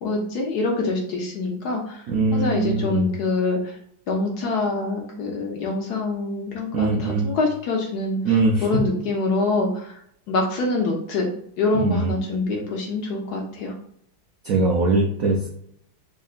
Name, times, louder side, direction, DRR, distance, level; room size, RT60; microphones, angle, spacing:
voice 1, 0.0-2.0 2.3-3.8 4.1-10.0 10.3-11.3 11.6-13.7, left 3 dB, 65° left, 0 dB, 1.0 m, -25 dB
voice 2, 2.1-3.1 6.7-7.3 8.2-8.7 11.7-12.1 12.5-12.6 14.4-15.5, right 3 dB, 75° right, 0 dB, 0.7 m, -21 dB
4.7 x 2.9 x 2.4 m, 0.68 s
omnidirectional pair, 2.2 m